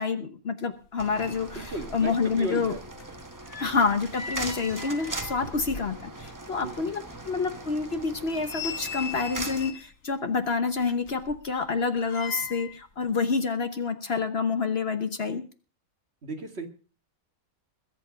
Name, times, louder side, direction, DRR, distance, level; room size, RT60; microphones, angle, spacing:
voice 1, 0.0-2.7 3.6-15.5, left 4 dB, 50° left, 9 dB, 1.2 m, -28 dB
sound 1, 0.8-0.9 1.1-2.1 2.4-6.3 6.7-6.8 7.3-7.4 8.0-10.0 10.8-12.8 13.1-13.2, left 6 dB, 70° left, 1.7 m, -40 dB
sound 2, 1.0-9.7, right 2 dB, 15° right, 1.1 m, -40 dB
voice 2, 1.6-2.8 6.6-6.8 16.2-16.7, right 2 dB, 45° right, 5 dB, 2.1 m, -35 dB
21.5 x 8.3 x 5.0 m, 0.38 s
omnidirectional pair, 1.5 m